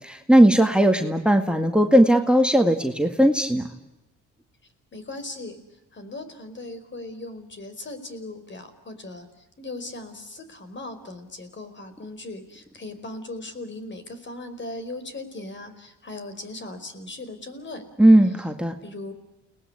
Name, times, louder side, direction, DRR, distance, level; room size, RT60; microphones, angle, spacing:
voice 1, 0.0-3.7 18.0-18.7, right 1 dB, 5° right, 7 dB, 2.0 m, -18 dB
voice 2, 4.9-17.9 18.8-19.1, left 2 dB, 40° left, 10 dB, 4.8 m, -38 dB
30.0 x 19.5 x 9.8 m, 0.98 s
cardioid pair, 90°, 30 cm